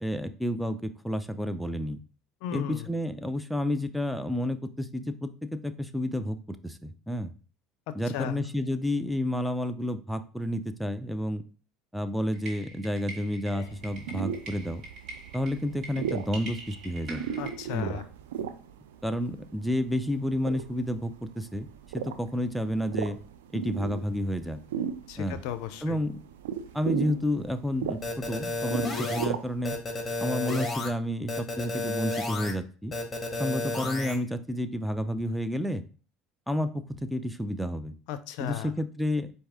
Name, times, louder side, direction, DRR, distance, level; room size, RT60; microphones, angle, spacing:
voice 1, 0.0-2.0 2.5-7.3 7.9-11.4 11.9-14.8 15.3-17.2 17.7-18.0 19.0-21.7 21.9-23.2 23.5-24.6 25.2-25.4 25.8-26.2 26.7-29.8 30.2-32.9 33.4-35.8 36.5-37.9 38.4-39.3, left 1 dB, ahead, 10 dB, 0.5 m, -30 dB
voice 2, 2.4-2.9 8.1-8.4 13.5-13.7 17.4-18.0 25.1-26.0 38.1-38.7, left 10 dB, 70° left, 11 dB, 0.4 m, -35 dB
sound 1, 12.3-17.6, right 3 dB, 50° right, 1.6 m, -43 dB
sound 2, 13.7-29.8, right 9 dB, 85° right, 0.4 m, -37 dB
sound 3, 28.0-29.3 29.6-30.9 31.3-32.5 32.9-34.2, left 2 dB, 20° left, 1.3 m, -31 dB
4.6 x 2.7 x 3.5 m, 0.39 s
hypercardioid pair, 80°, 0 cm